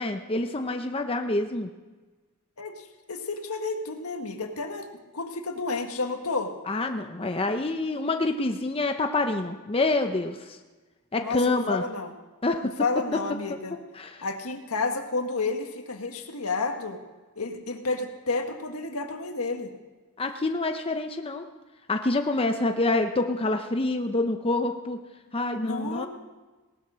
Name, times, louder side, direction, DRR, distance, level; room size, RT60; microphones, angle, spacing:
voice 1, 0.0-1.7 6.7-10.6 11.1-11.8 12.4-12.7 13.5-13.6 14.0-14.3 20.2-21.5 21.9-25.0 25.3-26.1, left 2 dB, 25° left, 5 dB, 0.7 m, -27 dB
voice 2, 2.6-4.9 5.1-6.5 11.2-12.1 12.8-13.8 14.2-17.0 17.3-19.7 25.6-26.1, left 3 dB, 80° left, 5 dB, 1.7 m, -31 dB
18.0 x 11.5 x 6.3 m, 1.3 s
head